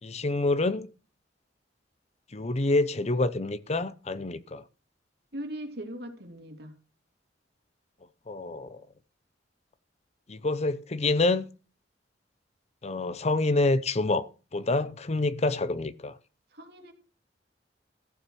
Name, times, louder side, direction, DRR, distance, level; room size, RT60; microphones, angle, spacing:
voice 1, 0.0-0.9 2.3-4.6 8.3-8.8 10.3-11.5 12.8-16.2, left 2 dB, 35° left, 0.7 m, -27 dB
voice 2, 5.3-6.8 16.5-16.9, right 1 dB, 60° right, 2.7 m, -39 dB
14.0 x 7.1 x 6.2 m
head